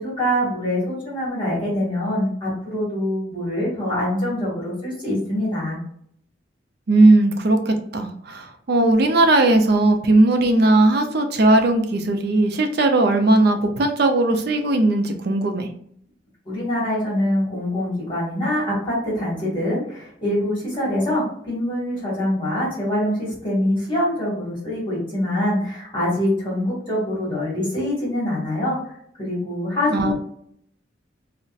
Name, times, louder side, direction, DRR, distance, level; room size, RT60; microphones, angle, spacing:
voice 1, 0.0-5.8 16.4-28.9 29.2-30.1, left 1 dB, 25° left, -7 dB, 1.5 m, -24 dB
voice 2, 6.9-15.7 29.9-30.1, right 2 dB, 55° right, 5 dB, 0.5 m, -18 dB
3.9 x 2.1 x 2.4 m, 0.65 s
head